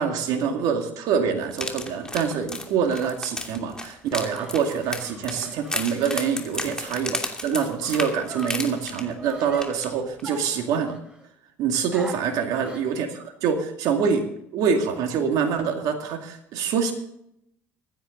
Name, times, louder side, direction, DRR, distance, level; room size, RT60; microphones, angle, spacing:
voice 1, 0.0-11.0 11.6-14.3 14.5-16.9, right 6 dB, 65° right, 4 dB, 2.2 m, -25 dB
sound 1, 1.5-9.3 9.6-9.9 10.2-10.3, left 2 dB, 10° left, 2.8 m, -33 dB
sound 2, 4.0-7.1 7.5-9.7 10.2-11.2 11.9-12.9, right 2 dB, 15° right, 4.8 m, -41 dB
24.5 x 9.9 x 3.9 m, 0.77 s
hypercardioid pair, 70°, 7 cm